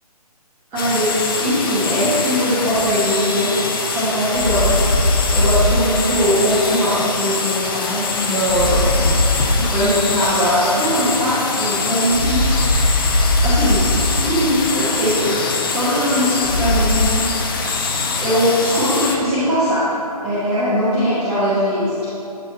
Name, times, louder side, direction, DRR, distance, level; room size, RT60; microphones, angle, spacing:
voice 1, 0.7-4.8 5.3-8.9 9.5-12.5 13.4-17.4 17.7-19.9 20.2-22.0, equal, 10° right, -13 dB, 0.6 m, -20 dB
sound 1, 0.8-19.2, left 4 dB, 35° left, 0.6 m, -24 dB
sound 2, 2.8-2.9 4.3-6.1 8.5-9.8 12.1-14.4 16.4-17.1, left 1 dB, 65° left, 0.9 m, -19 dB
8.9 x 3.5 x 4.1 m, 3.0 s
figure-of-eight pair, 145°, 20 cm